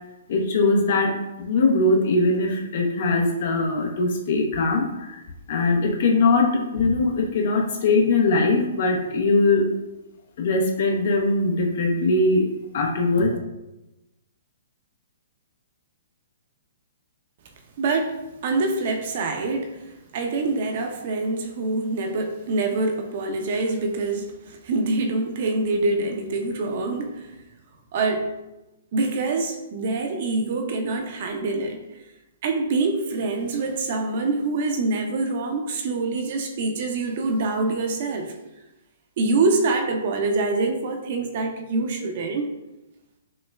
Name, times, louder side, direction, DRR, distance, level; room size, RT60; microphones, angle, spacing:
voice 1, 0.3-5.2 5.5-9.7 10.4-12.5 12.7-13.4, left 3 dB, 60° left, 1 dB, 0.7 m, -21 dB
voice 2, 17.8-27.3 27.9-28.3 28.9-31.8 32.4-38.3 39.2-42.5, right 3 dB, 50° right, 4 dB, 0.6 m, -25 dB
6.1 x 2.1 x 2.3 m, 0.98 s
hypercardioid pair, 130°, 0 cm